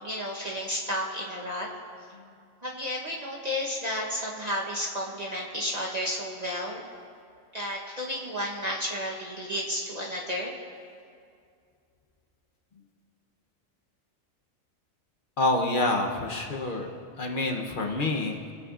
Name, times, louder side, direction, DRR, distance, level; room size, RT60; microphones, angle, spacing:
voice 1, 0.0-1.7 2.6-6.8 7.5-10.6, equal, 35° right, -4 dB, 1.0 m, -32 dB
voice 2, 15.4-16.9 17.2-18.5, left 2 dB, 45° left, 2 dB, 0.9 m, -27 dB
20.5 x 8.0 x 2.5 m, 2.3 s
omnidirectional pair, 1.4 m